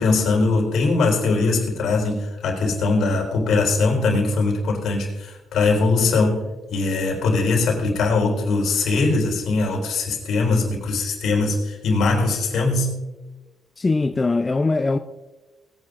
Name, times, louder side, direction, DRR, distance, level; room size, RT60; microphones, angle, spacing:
voice 1, 0.0-6.4 6.7-12.9, left 3 dB, 75° left, 4.0 m, -21 dB
voice 2, 13.8-15.0, left 3 dB, 25° left, 0.5 m, -21 dB
21.0 x 9.7 x 2.5 m
cardioid pair, 90°, 0 cm